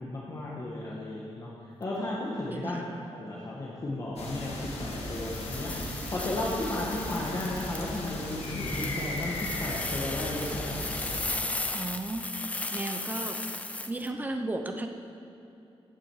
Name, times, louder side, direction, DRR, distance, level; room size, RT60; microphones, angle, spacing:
voice 1, 0.0-2.8 3.1-5.7 6.1-11.4, left 2 dB, 35° left, -5 dB, 1.4 m, -34 dB
sound 1, 4.2-11.3, left 1 dB, 85° left, 1.7 m, -37 dB
sound 2, 4.9-14.1, left 2 dB, 15° left, 0.4 m, -37 dB
voice 2, 11.7-13.4 13.7-14.9, right 2 dB, 15° right, 5 dB, 0.7 m, -35 dB
16.0 x 7.6 x 4.8 m, 2.8 s
wide cardioid pair, 170°, 10 cm